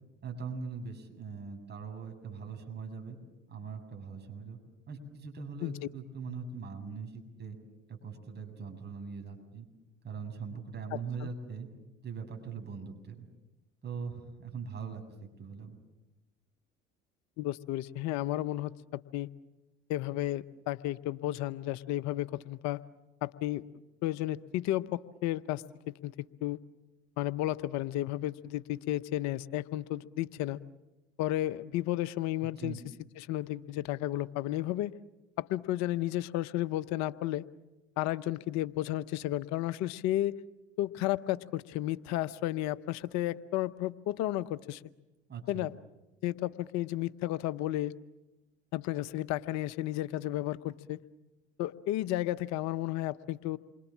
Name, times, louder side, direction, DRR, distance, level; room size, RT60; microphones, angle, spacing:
voice 1, 0.2-3.2 3.5-4.6 4.9-7.6 7.9-9.7 10.0-11.7 12.0-13.3 13.8-15.0 15.4-15.8 32.4-32.8 45.3-45.7, right 5 dB, 35° right, 3 dB, 7.7 m, -41 dB
voice 2, 17.4-19.3 19.9-22.8 23.2-23.6 24.0-26.1 26.4-26.6 27.2-30.6 31.2-32.8 33.2-34.9 35.4-37.5 38.0-40.4 40.8-44.8 45.5-45.7 46.2-48.0 48.7-51.0 51.6-53.6, left 14 dB, 65° left, 14 dB, 0.9 m, -33 dB
28.0 x 24.5 x 7.4 m, 1.0 s
hypercardioid pair, 70°, 30 cm